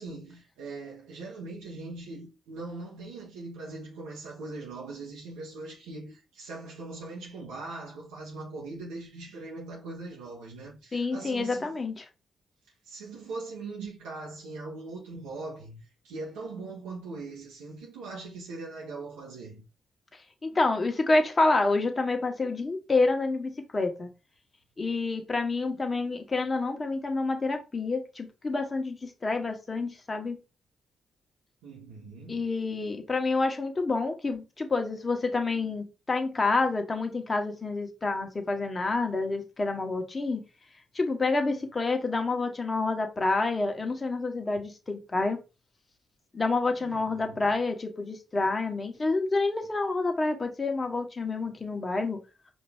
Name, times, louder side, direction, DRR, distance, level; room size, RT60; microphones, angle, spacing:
voice 1, 0.0-11.8 12.8-19.6 31.6-32.4 46.8-47.5, right 3 dB, 90° right, 0.9 m, -41 dB
voice 2, 10.9-12.1 20.4-24.1 24.8-30.4 32.3-40.4 40.9-45.4 46.3-52.2, left 3 dB, 35° left, 1.2 m, -28 dB
5.0 x 2.7 x 3.4 m
supercardioid pair, 50°, 0 cm